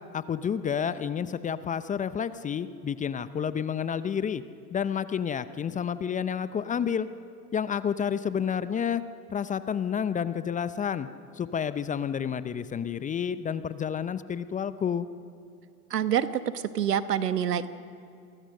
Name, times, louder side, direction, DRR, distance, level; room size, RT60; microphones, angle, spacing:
voice 1, 0.1-4.4 4.7-7.1 7.5-9.0 9.3-11.1 11.3-15.1, left 7 dB, 15° left, 14 dB, 0.7 m, -30 dB
voice 2, 15.9-17.7, right 9 dB, 80° right, 12 dB, 1.3 m, -27 dB
29.0 x 23.0 x 6.6 m, 2.4 s
hypercardioid pair, 100°, 47 cm